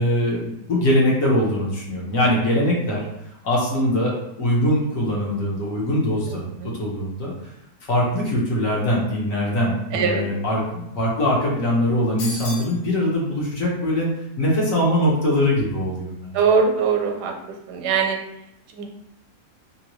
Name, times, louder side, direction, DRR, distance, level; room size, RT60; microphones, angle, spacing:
voice 1, 0.0-3.0 3.4-7.3 7.9-14.1 14.4-16.4, left 1 dB, 60° left, -3 dB, 1.2 m, -22 dB
voice 2, 9.9-10.3 16.3-17.3 17.7-18.2 18.7-18.9, right 5 dB, 90° right, 3 dB, 1.2 m, -21 dB
sound 1, 12.2-12.8, left 2 dB, 85° left, 1.4 m, -32 dB
3.0 x 2.6 x 3.0 m, 0.83 s
omnidirectional pair, 1.7 m